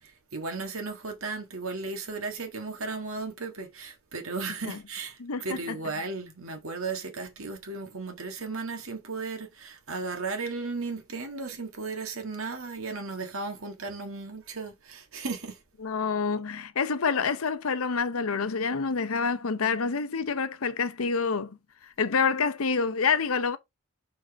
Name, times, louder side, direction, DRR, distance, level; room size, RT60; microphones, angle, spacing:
voice 1, 0.0-15.6, right 3 dB, 75° right, 1.6 m, -35 dB
voice 2, 5.2-5.8 15.8-21.6 22.0-23.6, left 5 dB, 85° left, 0.8 m, -27 dB
5.2 x 4.6 x 4.0 m
head